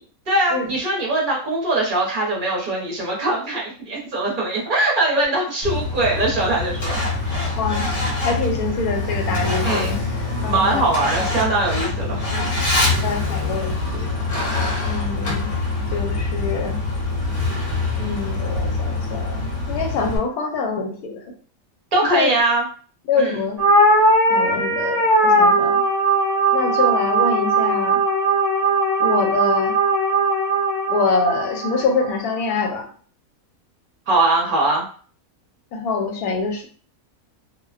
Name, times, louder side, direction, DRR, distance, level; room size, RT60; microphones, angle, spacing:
voice 1, 0.3-7.0 9.6-10.0 10.4-12.5 21.9-22.7 23.2-23.4 34.1-34.9, right 2 dB, 45° right, -3 dB, 0.8 m, -21 dB
Truck, 5.6-20.2, left 3 dB, 50° left, 0.8 m, -24 dB
voice 2, 7.6-7.9 8.2-9.9 10.4-10.8 13.0-14.1 14.9-15.5 15.9-16.8 18.0-21.2 22.1-22.3 23.1-23.6 24.3-25.8 26.5-28.0 29.0-29.8 30.9-32.9 35.7-36.7, left 4 dB, 80° left, 3 dB, 1.1 m, -25 dB
sound 1, 23.6-32.2, right 2 dB, 10° right, 0.8 m, -19 dB
2.5 x 2.1 x 2.4 m, 0.42 s
omnidirectional pair, 1.6 m